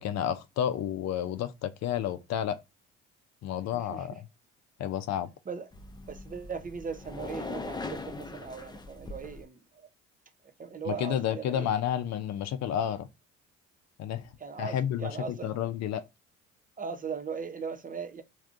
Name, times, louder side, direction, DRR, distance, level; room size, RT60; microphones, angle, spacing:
voice 1, 0.0-2.6 3.4-4.3 4.8-5.3 10.9-13.1 14.0-14.3 14.6-16.0, left 10 dB, 55° left, 0.5 m, -31 dB
voice 2, 3.7-4.2 5.5-5.7 6.1-9.9 10.6-11.7 14.4-15.6 16.8-18.2, right 6 dB, 25° right, 0.6 m, -39 dB
sound 1, 5.7-9.4, left 3 dB, 15° left, 0.6 m, -40 dB
3.4 x 2.6 x 2.5 m
hypercardioid pair, 65°, 32 cm